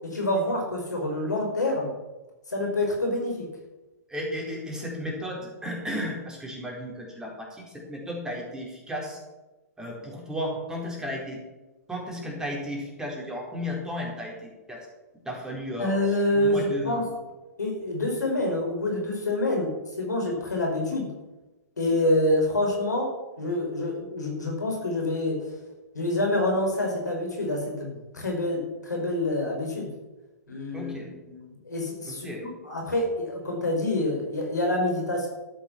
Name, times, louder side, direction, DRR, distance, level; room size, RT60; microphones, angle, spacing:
voice 1, 0.0-1.9 2.5-3.5 15.8-17.1 17.6-19.7 20.0-21.1 21.8-23.1 23.4-25.5 25.9-29.9 30.5-31.0 31.3-32.3 32.6-35.3, left 1 dB, 85° left, 1 dB, 5.1 m, -27 dB
voice 2, 4.1-9.2 9.8-11.4 11.9-14.9 15.2-15.9 16.3-17.1 30.7-31.1 32.1-32.4, equal, 5° right, -2 dB, 4.3 m, -34 dB
13.0 x 8.6 x 7.2 m, 1.1 s
hypercardioid pair, 115°, 9 cm